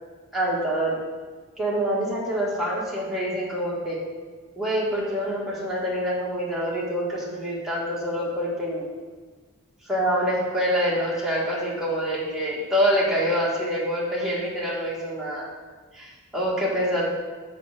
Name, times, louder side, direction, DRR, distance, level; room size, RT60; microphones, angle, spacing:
voice 1, 0.3-1.0 1.6-4.0 4.6-8.9 9.9-15.5 15.9-17.1, equal, ahead, -6 dB, 1.8 m, -26 dB
6.7 x 4.7 x 6.5 m, 1.4 s
head